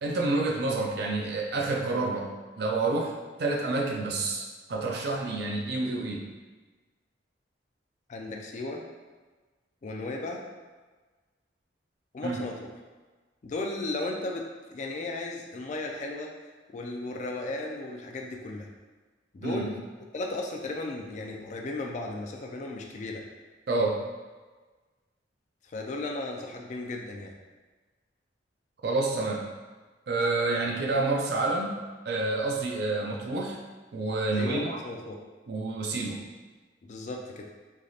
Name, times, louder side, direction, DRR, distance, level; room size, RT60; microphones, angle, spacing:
voice 1, 0.0-3.1 3.4-6.3 12.2-12.5 19.4-19.7 23.7-24.0 28.8-29.5 30.1-33.6 33.9-34.8 35.5-36.3, right 2 dB, 60° right, 0 dB, 0.4 m, -29 dB
voice 2, 8.1-8.8 9.8-10.4 12.1-12.7 13.4-14.4 14.7-16.3 16.7-18.7 19.3-19.8 20.1-23.2 25.6-27.3 34.3-35.2 36.8-37.5, left 2 dB, 40° left, 1 dB, 0.3 m, -35 dB
3.3 x 2.6 x 2.3 m, 1.3 s
head